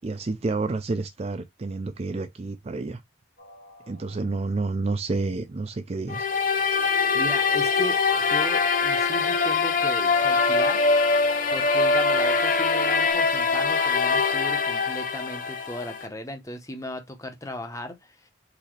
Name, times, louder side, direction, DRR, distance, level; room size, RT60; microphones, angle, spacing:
voice 1, 0.0-3.0 3.9-6.3, right 3 dB, 30° right, 0.4 m, -29 dB
sound 1, 3.4-4.5 6.7-10.0 12.4-13.1, equal, 65° left, 1.8 m, -41 dB
sound 2, 6.1-16.1, left 4 dB, 40° left, 0.7 m, -23 dB
voice 2, 7.1-10.8 11.5-18.3, left 1 dB, 15° left, 0.8 m, -36 dB
4.1 x 3.9 x 3.0 m
head